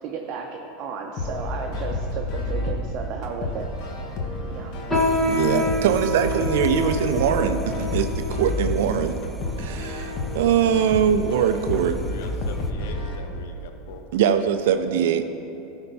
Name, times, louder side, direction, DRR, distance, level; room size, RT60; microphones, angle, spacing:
voice 1, 0.0-3.7 4.5-4.7, right 5 dB, 45° right, 1 dB, 0.7 m, -33 dB
sound 1, 1.2-13.2, left 2 dB, 55° left, 1.3 m, -30 dB
sound 2, 4.9-10.6 11.2-11.4 12.1-12.4 12.8-13.0 13.7-13.8, left 2 dB, 20° left, 1.5 m, -28 dB
sound 3, 4.9-12.7, right 1 dB, 5° right, 0.6 m, -42 dB
voice 2, 5.3-9.2 9.6-12.0 14.1-15.2, right 8 dB, 75° right, 9 dB, 0.4 m, -22 dB
voice 3, 11.5-14.1, left 5 dB, 75° left, 5 dB, 0.8 m, -42 dB
12.0 x 4.3 x 5.4 m, 2.9 s
supercardioid pair, 110°, 0 cm